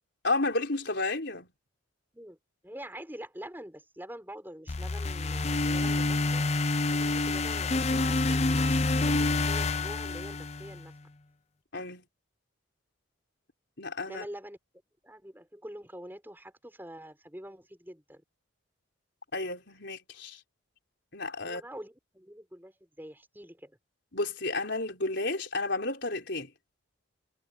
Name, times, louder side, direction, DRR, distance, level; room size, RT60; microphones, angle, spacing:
voice 1, 0.2-1.5 11.7-12.0 13.8-14.2 19.3-20.4 21.1-21.6 24.1-26.5, left 2 dB, 55° left, 4.6 m, -32 dB
voice 2, 2.6-6.5 6.9-10.9 14.1-14.6 15.0-18.2 21.4-23.8, right 1 dB, 10° right, 5.8 m, -45 dB
sound 1, 4.7-10.8, left 2 dB, 30° left, 0.6 m, -27 dB
head